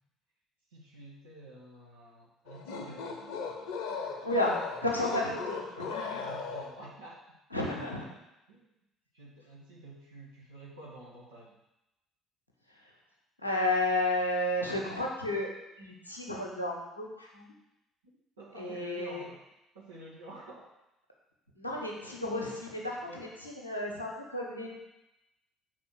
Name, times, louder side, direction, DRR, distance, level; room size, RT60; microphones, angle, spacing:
voice 1, 0.7-3.2 6.0-7.2 8.5-8.7 9.1-11.6 16.1-16.2 18.4-19.4 19.7-20.6 23.1-23.3, right 2 dB, 75° right, -5 dB, 1.2 m, -49 dB
sound 1, 2.5-7.0, left 5 dB, 60° left, 0.9 m, -38 dB
voice 2, 4.2-6.3 7.5-8.1 12.7-12.8 13.4-17.5 18.6-19.2 21.6-24.7, left 1 dB, 90° left, -2 dB, 1.0 m, -32 dB
5.9 x 4.2 x 6.3 m, 0.90 s
figure-of-eight pair, 55°, 0 cm